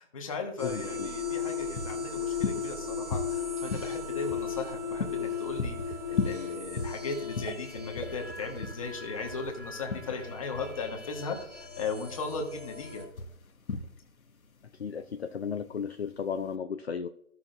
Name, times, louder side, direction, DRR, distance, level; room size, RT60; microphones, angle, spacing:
voice 1, 0.0-13.0, left 4 dB, 25° left, 3 dB, 1.3 m, -37 dB
voice 2, 0.6-1.1 14.8-17.1, left 6 dB, 50° left, 8 dB, 0.6 m, -34 dB
sound 1, 0.6-13.0, left 6 dB, 10° right, 0.6 m, -37 dB
sound 2, 0.9-16.6, left 4 dB, 75° left, 1.3 m, -38 dB
Whoosh swoosh swish, 3.7-9.2, right 4 dB, 45° right, 1.2 m, -48 dB
16.0 x 5.8 x 2.6 m, 0.76 s
hypercardioid pair, 160°, 42 cm